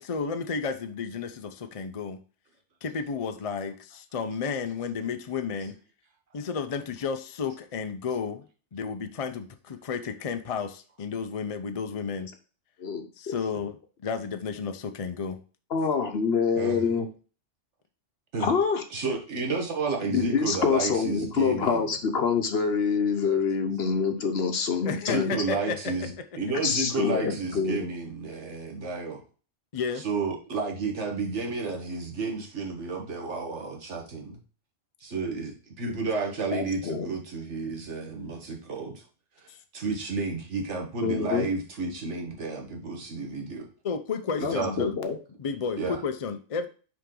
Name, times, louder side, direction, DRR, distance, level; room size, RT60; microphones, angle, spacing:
voice 1, 0.0-2.2 2.8-5.7 6.3-8.4 8.7-12.3 13.2-13.8 14.0-15.4 24.8-25.9 29.7-30.0 39.5-39.6 43.8-44.9 45.4-46.7, left 5 dB, 40° left, 8 dB, 0.5 m, -32 dB
voice 2, 12.8-13.3 15.7-17.1 18.4-18.8 20.1-25.3 26.6-27.9 36.5-37.1 41.0-41.5 44.4-45.2, left 5 dB, 60° left, 7 dB, 1.1 m, -26 dB
voice 3, 18.9-21.9 25.1-29.2 30.0-34.4 35.0-39.0 39.4-43.7 44.4-44.9 45.8-46.0, right 4 dB, 75° right, 2 dB, 1.7 m, -31 dB
5.8 x 5.0 x 3.8 m, 0.37 s
omnidirectional pair, 1.2 m